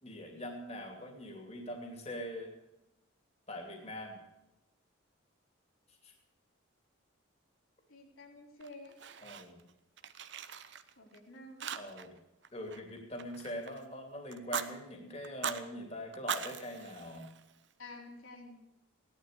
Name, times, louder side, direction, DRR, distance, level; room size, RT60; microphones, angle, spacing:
voice 1, 0.0-2.5 3.5-4.2 6.0-6.1 9.2-9.6 11.7-12.1 12.5-17.3, equal, 30° left, 2 dB, 2.7 m, -43 dB
voice 2, 7.9-9.0 11.0-11.7 17.8-18.6, left 2 dB, 90° left, 0 dB, 4.1 m, -50 dB
Fire, 8.6-9.7 10.0-11.2 11.6-12.2 12.4-13.8 14.3-14.7 15.2-15.6 16.1-17.7, right 7 dB, 60° right, 0.9 m, -40 dB
17.0 x 12.0 x 6.7 m, 0.93 s
head